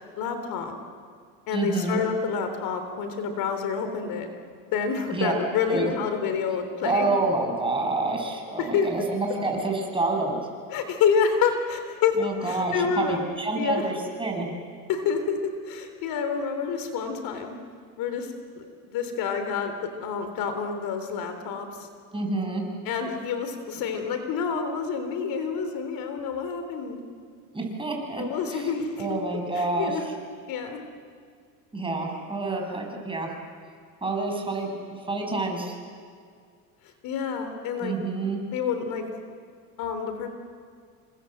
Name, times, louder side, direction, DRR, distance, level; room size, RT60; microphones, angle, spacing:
voice 1, 0.2-0.8 1.5-4.3 4.7-7.1 8.6-9.1 10.7-13.9 14.9-17.6 18.0-18.7 18.9-21.9 22.9-27.0 28.2-29.2 29.5-30.0 30.5-30.8 37.0-37.9 38.5-39.0 39.8-40.3, left 6 dB, 60° left, 7 dB, 3.6 m, -28 dB
voice 2, 1.5-2.0 5.1-5.3 5.7-5.9 6.8-10.4 12.2-14.5 22.1-22.6 27.5-28.2 28.5-28.7 29.0-30.1 31.7-33.3 34.0-35.8 37.8-38.4, right 3 dB, 15° right, 1 dB, 7.1 m, -28 dB
29.0 x 26.0 x 8.0 m, 2.1 s
supercardioid pair, 110°, 39 cm